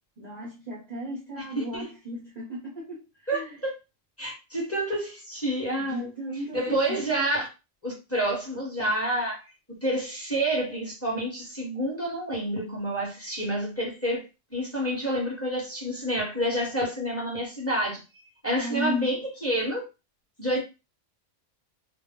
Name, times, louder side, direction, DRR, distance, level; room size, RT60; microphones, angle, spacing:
voice 1, 0.2-3.6 5.8-7.1 18.6-19.2, equal, 40° right, 0.6 m, -35 dB
voice 2, 1.4-1.9 3.3-3.7 4.2-6.1 6.5-7.5 7.8-9.4 9.7-14.2 14.5-18.0 18.4-19.8 20.4-20.6, right 1 dB, 15° left, 1.0 m, -28 dB
2.4 x 2.0 x 3.6 m
omnidirectional pair, 1.3 m